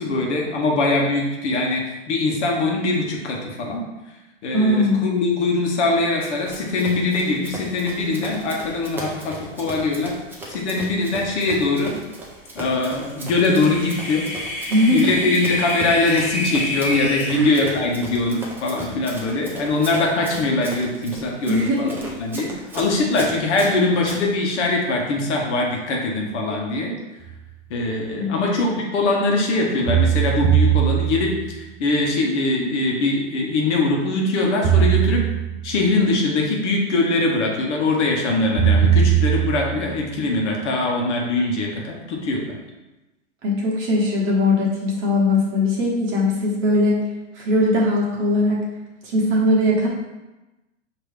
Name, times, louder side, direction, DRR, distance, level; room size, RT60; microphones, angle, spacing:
voice 1, 0.0-3.8 4.4-10.1 10.5-12.0 12.5-14.3 14.9-26.9 27.7-35.2 35.6-42.5, left 2 dB, 65° left, -1 dB, 1.1 m, -22 dB
voice 2, 4.5-5.0 14.7-15.1 17.3-17.6 21.5-22.0 28.2-28.4 43.4-47.0 47.3-48.6 49.0-49.9, left 1 dB, 30° right, -4 dB, 1.2 m, -20 dB
Run, 6.2-24.2, right 1 dB, 5° right, 0.4 m, -37 dB
sound 1, 13.1-17.4, left 1 dB, 20° left, 0.8 m, -28 dB
sound 2, 27.2-27.3 29.9-31.5 34.6-35.7 38.6-39.9, right 9 dB, 50° right, 0.8 m, -19 dB
4.9 x 2.9 x 3.2 m, 1.1 s
hypercardioid pair, 120°, 38 cm